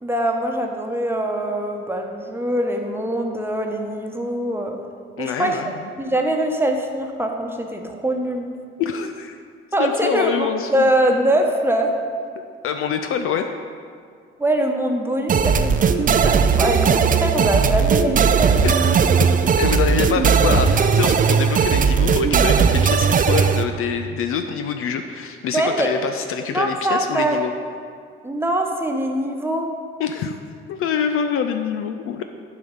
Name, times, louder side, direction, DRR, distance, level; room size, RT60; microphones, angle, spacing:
voice 1, 0.0-4.8 5.2-5.7 6.0-8.5 9.7-11.9 14.4-18.9 25.5-25.9 26.5-27.4 28.2-29.7, right 1 dB, 10° right, 2 dB, 1.1 m, -23 dB
voice 2, 5.2-5.8 8.8-9.4 9.8-10.9 12.6-13.6 18.6-27.5 30.0-30.4 30.7-32.2, left 7 dB, 50° left, 7 dB, 0.5 m, -25 dB
sound 1, 15.3-23.6, right 6 dB, 30° right, 0.5 m, -17 dB
11.0 x 4.9 x 5.4 m, 2.1 s
figure-of-eight pair, 45°, 29 cm